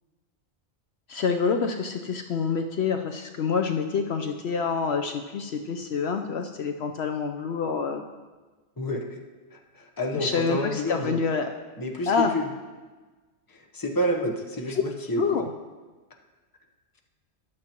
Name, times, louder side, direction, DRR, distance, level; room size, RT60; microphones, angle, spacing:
voice 1, 1.1-8.0 10.1-11.5 12.1-12.3 15.2-15.5, left 5 dB, 65° left, 5 dB, 0.8 m, -27 dB
voice 2, 8.8-9.2 9.5-11.2 11.8-12.4 13.5-15.2, equal, 20° left, 2 dB, 0.9 m, -29 dB
14.0 x 10.5 x 3.0 m, 1.3 s
omnidirectional pair, 1.2 m